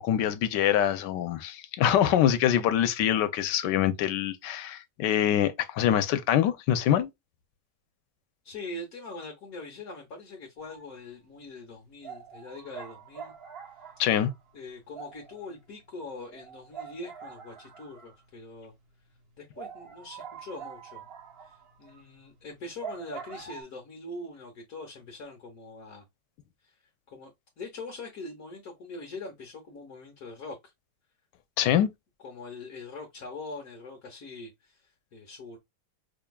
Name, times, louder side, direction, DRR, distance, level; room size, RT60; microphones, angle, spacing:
voice 1, 0.0-7.1 14.0-14.3 31.6-31.9, left 10 dB, 90° left, 1.3 m, -24 dB
voice 2, 8.4-13.3 14.5-18.7 19.4-21.1 21.4-26.0 26.6-26.7 27.1-27.3 27.6-30.7 31.6-31.8 32.2-35.6, left 2 dB, 65° left, 1.4 m, -42 dB
sound 1, 10.6-11.0 11.3-11.4 12.0-18.4 18.8-18.9 19.1-19.2 19.5-23.6, right 7 dB, 45° right, 1.0 m, -45 dB
5.0 x 2.7 x 2.2 m
omnidirectional pair, 1.8 m